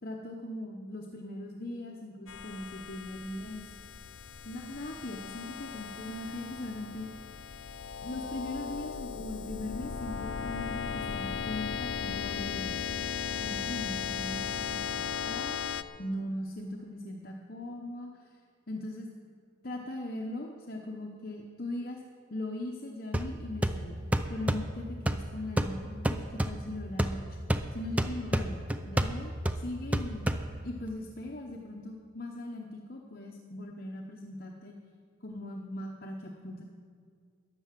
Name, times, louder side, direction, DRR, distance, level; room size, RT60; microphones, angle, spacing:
voice 1, 0.0-3.6 4.4-7.1 8.0-12.8 13.3-15.6 16.0-18.4 18.7-19.1 19.6-22.0 22.3-24.0 24.3-27.2 27.7-30.2 30.6-34.7 35.2-36.6, left 1 dB, 50° left, 0 dB, 0.9 m, -40 dB
sound 1, 2.3-15.8, left 7 dB, 85° left, 0.6 m, -37 dB
sound 2, 23.1-30.9, right 1 dB, 5° right, 0.5 m, -32 dB
13.5 x 10.5 x 7.4 m, 2.1 s
head